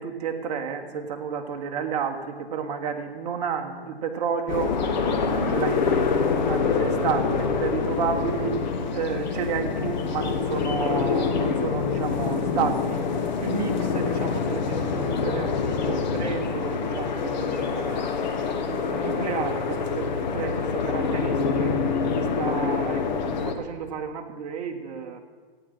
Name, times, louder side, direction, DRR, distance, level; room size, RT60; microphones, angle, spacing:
voice 1, 0.0-6.0 6.5-8.6 8.9-13.1 13.4-18.1 18.6-21.7 22.1-25.2, right 6 dB, 40° right, 3 dB, 1.4 m, -31 dB
sound 1, 4.5-23.5, left 5 dB, 45° left, 1.1 m, -26 dB
14.0 x 9.4 x 5.5 m, 1.5 s
hypercardioid pair, 160°, 31 cm